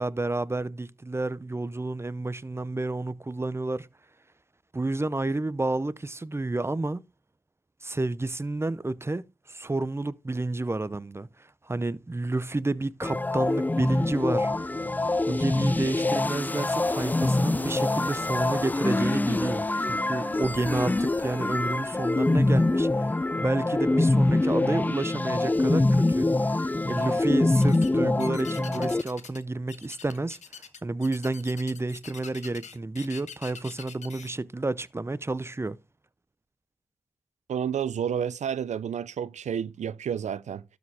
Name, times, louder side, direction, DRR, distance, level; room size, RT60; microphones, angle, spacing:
voice 1, 0.0-3.9 4.7-7.0 7.8-11.3 11.6-14.5 15.3-23.1 23.4-30.4 30.8-35.8, right 2 dB, 20° right, 0.7 m, -30 dB
sound 1, 13.0-29.0, left 2 dB, 15° left, 0.4 m, -25 dB
sound 2, 13.9-23.2, left 3 dB, 60° left, 2.4 m, -47 dB
sound 3, 27.5-27.9 28.2-29.4 29.7-34.3, left 6 dB, 75° left, 1.2 m, -44 dB
voice 2, 37.5-40.6, right 8 dB, 80° right, 0.5 m, -30 dB
12.5 x 5.0 x 3.5 m
cardioid pair, 55°, 12 cm